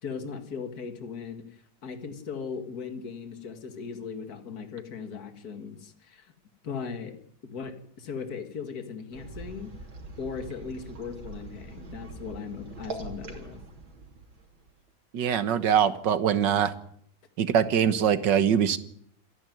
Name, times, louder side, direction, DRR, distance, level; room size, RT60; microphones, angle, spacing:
voice 1, 0.0-6.3 6.6-7.2 7.4-9.7 10.2-13.6, left 5 dB, 50° left, 8 dB, 2.4 m, -38 dB
sound 1, 9.1-14.9, right 3 dB, 85° right, 3.9 m, -43 dB
voice 2, 15.1-16.7 17.4-18.8, right 8 dB, 65° right, 12 dB, 1.9 m, -23 dB
27.5 x 11.0 x 9.4 m, 0.67 s
omnidirectional pair, 2.1 m